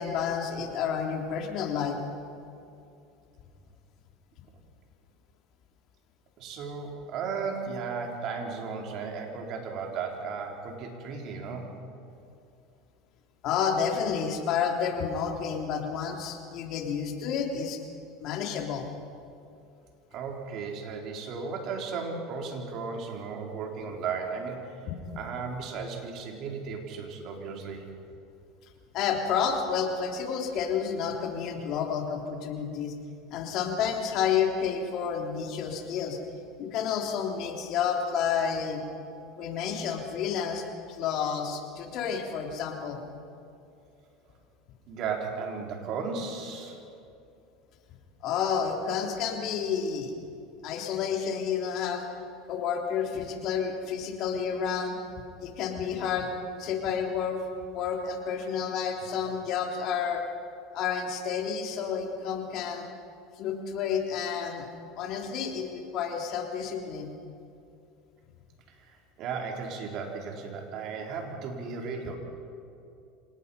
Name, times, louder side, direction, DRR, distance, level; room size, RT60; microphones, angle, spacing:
voice 1, 0.0-2.0 13.4-17.8 18.2-18.8 28.9-32.9 33.3-36.2 36.6-38.8 39.4-43.0 48.2-50.1 50.6-52.0 52.5-55.0 55.4-57.4 57.7-60.2 60.7-62.9 63.4-64.7 65.0-67.1, left 7 dB, 55° left, 2 dB, 3.4 m, -30 dB
voice 2, 6.4-11.7 20.1-24.9 25.2-27.9 44.9-46.8 68.7-72.2, right 5 dB, 55° right, 1 dB, 4.0 m, -35 dB
26.0 x 19.0 x 5.6 m, 2.6 s
supercardioid pair, 110°, 0 cm